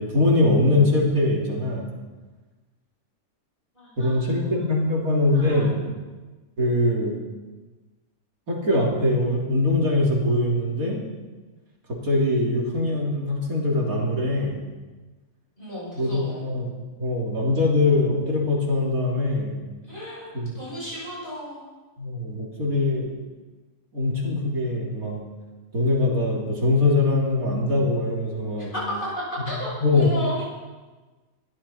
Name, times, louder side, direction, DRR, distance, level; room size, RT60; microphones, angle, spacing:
voice 1, 0.0-1.9 4.0-5.7 6.6-7.1 8.5-11.0 11.9-14.6 16.0-19.6 20.3-20.6 22.0-23.1 23.9-25.2 25.7-28.7 29.5-29.6 29.8-30.1, left 2 dB, 85° right, -3 dB, 3.6 m, -22 dB
voice 2, 3.7-4.5 5.0-5.9 15.6-16.4 19.9-21.7 28.6-29.1 29.4-30.5, equal, 35° left, -6 dB, 7.5 m, -34 dB
21.5 x 13.5 x 4.4 m, 1.3 s
omnidirectional pair, 1.5 m